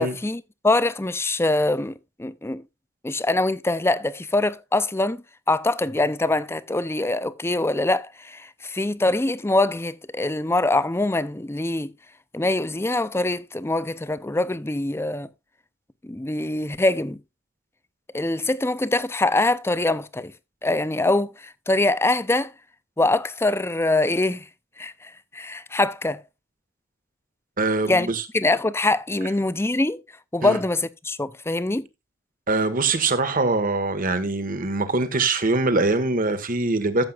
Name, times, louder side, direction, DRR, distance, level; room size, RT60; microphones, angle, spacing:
voice 1, 0.0-2.6 3.0-11.9 12.3-15.3 16.0-17.2 18.1-20.3 20.6-22.5 23.0-24.5 24.8-26.2 27.9-30.0 30.3-31.9, left 2 dB, 10° left, 0.5 m, -24 dB
voice 2, 27.6-28.2 30.4-30.6 32.5-37.0, right 3 dB, 45° right, 1.5 m, -23 dB
14.0 x 7.7 x 2.4 m
head